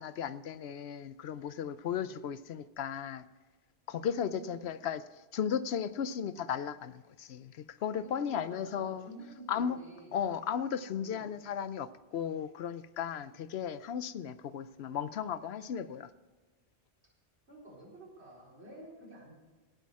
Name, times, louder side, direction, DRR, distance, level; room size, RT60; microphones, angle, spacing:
voice 1, 0.0-3.2 3.9-5.0 5.3-9.1 9.5-9.8 10.1-16.1, left 8 dB, 70° left, 15 dB, 0.8 m, -35 dB
voice 2, 1.8-2.3 4.3-4.6 7.9-10.2 10.9-11.3 13.2-13.4 17.5-19.3, right 1 dB, 70° right, -3 dB, 4.7 m, -51 dB
17.0 x 8.4 x 4.7 m, 1.3 s
omnidirectional pair, 1.1 m